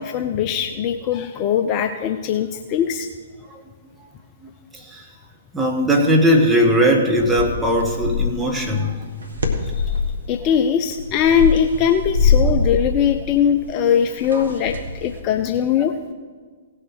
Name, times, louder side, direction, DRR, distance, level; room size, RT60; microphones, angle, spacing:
voice 1, 0.0-3.1 9.9-10.0 10.3-16.0, left 8 dB, 30° left, 7 dB, 0.6 m, -20 dB
voice 2, 4.4-5.1 5.5-9.0 12.4-12.6 14.3-14.5, equal, 5° right, 0 dB, 1.7 m, -19 dB
sound 1, 7.2-8.5 9.0-10.2 10.8-15.2, left 4 dB, 75° right, 1.6 m, -23 dB
17.5 x 6.6 x 4.7 m, 1.6 s
figure-of-eight pair, 115°, 0 cm